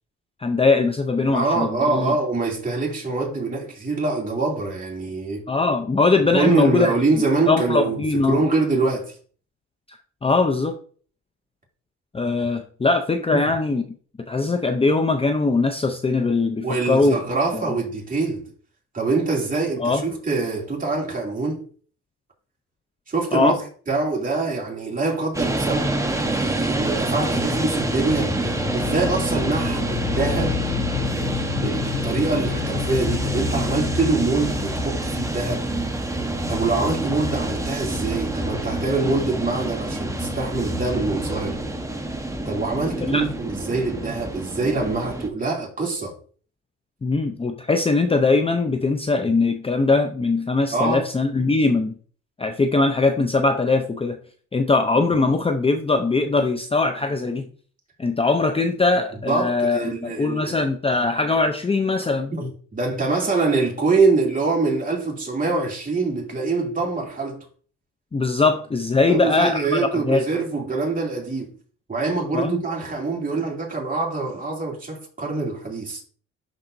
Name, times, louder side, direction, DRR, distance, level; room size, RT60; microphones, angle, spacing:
voice 1, 0.4-2.1 5.5-6.9 7.5-8.4 9.9-10.8 12.1-13.8 14.3-17.2 17.5-17.6 19.8-20.0 23.3-23.6 43.0-43.2 47.0-52.0 52.4-54.2 54.5-57.5 58.0-62.3 68.1-70.2 72.3-72.6, left 3 dB, 20° left, 0.6 m, -21 dB
voice 2, 1.3-5.4 6.3-9.2 13.3-13.4 16.6-18.4 18.9-21.6 23.1-23.5 23.9-30.6 31.6-35.7 36.5-41.6 42.4-46.1 50.7-51.0 59.3-60.6 62.3-67.5 69.0-71.5 71.9-76.0, right 3 dB, 25° right, 2.8 m, -24 dB
sound 1, 25.3-45.3, right 1 dB, 10° right, 1.1 m, -27 dB
sound 2, 28.0-36.6, left 13 dB, 65° left, 0.6 m, -31 dB
11.5 x 4.2 x 2.7 m
cardioid pair, 90°, 30 cm